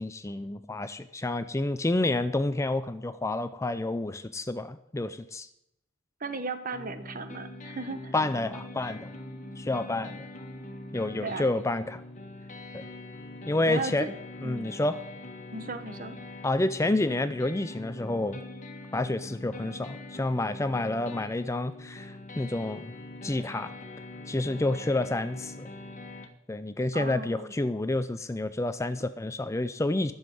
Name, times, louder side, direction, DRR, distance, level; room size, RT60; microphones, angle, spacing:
voice 1, 0.0-5.5 8.1-9.1 9.6-10.3 10.9-12.0 12.7-12.8 13.5-14.1 14.4-15.0 16.4-18.4 18.9-22.9 23.2-23.7 24.3-25.7 26.5-30.1, left 2 dB, 15° left, 12 dB, 0.4 m, -29 dB
voice 2, 6.2-8.1 11.2-11.4 13.7-14.1 14.4-14.7 15.5-16.2 26.9-27.5, right 3 dB, 40° right, 10 dB, 1.1 m, -36 dB
sound 1, 6.7-26.3, left 2 dB, 40° left, 1.5 m, -43 dB
11.5 x 7.2 x 9.0 m, 0.80 s
head